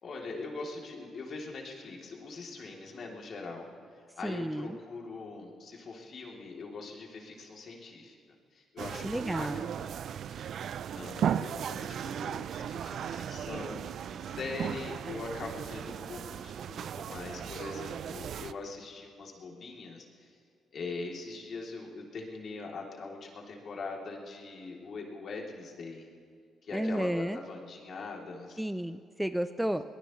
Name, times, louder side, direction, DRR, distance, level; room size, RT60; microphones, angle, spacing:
voice 1, 0.0-3.7 4.1-8.2 8.5-9.9 10.2-20.4 20.7-26.1 26.6-28.6, left 3 dB, 55° left, -1 dB, 2.9 m, -42 dB
voice 2, 4.2-4.8 9.0-9.6 26.7-27.4 28.6-29.8, equal, 5° right, 10 dB, 0.5 m, -32 dB
sound 1, 8.8-18.5, right 9 dB, 65° right, 0.4 m, -36 dB
22.5 x 19.5 x 3.1 m, 2.1 s
cardioid pair, 90°, 0 cm